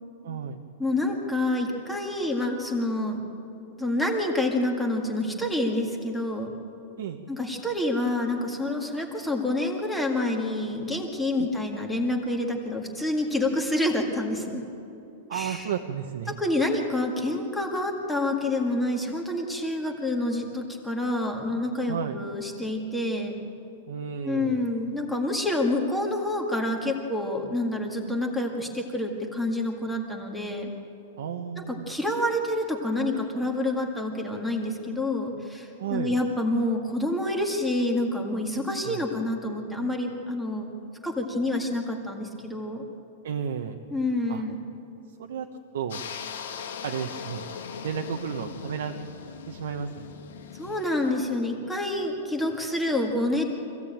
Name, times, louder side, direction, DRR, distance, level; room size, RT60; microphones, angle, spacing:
voice 1, 0.2-0.6 7.0-7.2 11.4-11.5 15.3-16.4 21.9-22.2 23.9-24.6 31.2-32.0 35.8-36.1 38.8-39.0 43.2-43.8 44.3-44.5 45.2-45.5 45.7-46.0 46.8-47.4 47.8-49.0 49.5-50.1, right 8 dB, 75° right, 3 dB, 1.3 m, -33 dB
voice 2, 0.8-3.2 3.8-6.5 7.3-14.6 15.3-15.7 16.3-23.3 24.2-30.7 31.6-40.7 41.0-42.8 43.9-44.6 50.5-53.4, left 1 dB, 5° left, 0 dB, 2.0 m, -28 dB
sound 1, 45.9-51.1, left 6 dB, 85° left, 2.7 m, -39 dB
25.0 x 16.0 x 9.0 m, 2.9 s
supercardioid pair, 175°, 0 cm